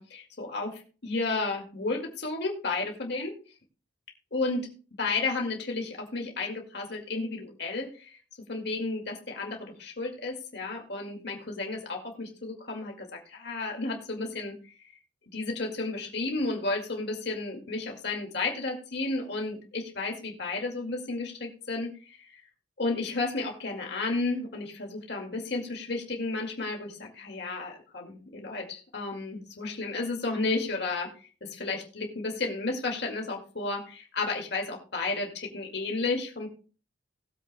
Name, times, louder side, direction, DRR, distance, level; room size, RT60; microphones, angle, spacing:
voice 1, 0.0-3.3 4.3-4.7 5.0-8.2 8.5-14.5 15.3-21.9 22.3-22.4 22.8-31.1 31.4-36.5, left 3 dB, 60° left, 0 dB, 2.2 m, -32 dB
19.5 x 8.1 x 2.3 m, 0.37 s
head